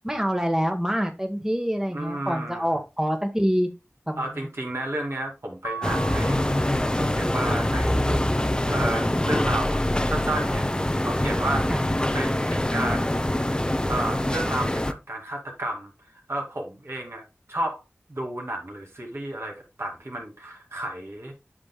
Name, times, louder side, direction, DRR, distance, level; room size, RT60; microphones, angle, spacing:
voice 1, 0.0-3.7 4.1-4.5 11.7-11.8, equal, 10° right, 1.2 m, -26 dB
voice 2, 1.9-2.7 4.2-6.6 7.1-8.2 8.7-11.8 12.1-13.5 13.9-15.9 16.3-17.2 17.5-17.8 18.1-21.3, right 1 dB, 65° right, 2.4 m, -32 dB
Mallet percussion, 5.6-7.5, right 5 dB, 85° left, 0.7 m, -38 dB
sound 1, 5.8-14.9, left 1 dB, 15° left, 0.6 m, -24 dB
8.5 x 6.3 x 2.2 m
wide cardioid pair, 45°, 5 cm